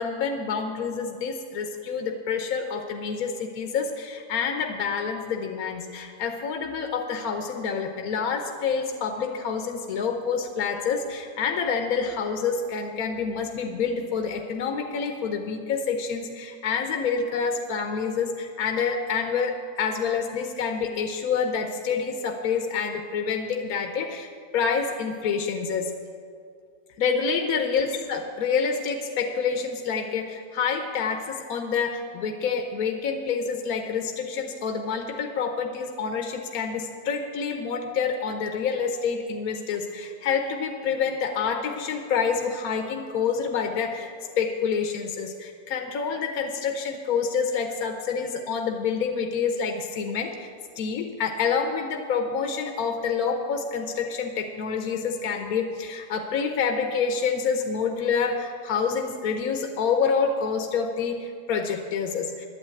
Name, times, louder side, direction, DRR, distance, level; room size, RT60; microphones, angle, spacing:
voice 1, 0.0-25.9 27.0-50.5 50.8-62.5, left 6 dB, 70° left, 4 dB, 1.3 m, -27 dB
11.5 x 9.0 x 8.9 m, 2.2 s
omnidirectional pair, 1.7 m